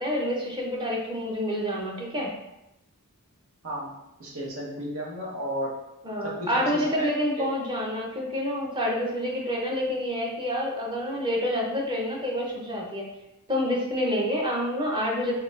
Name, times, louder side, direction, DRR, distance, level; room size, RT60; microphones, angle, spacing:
voice 1, 0.0-2.3 6.0-13.1 13.5-15.4, equal, 20° right, -2 dB, 0.7 m, -28 dB
voice 2, 4.2-5.7 6.2-7.1 7.4-7.5, equal, 65° right, -4 dB, 1.1 m, -33 dB
4.5 x 3.0 x 2.5 m, 0.88 s
head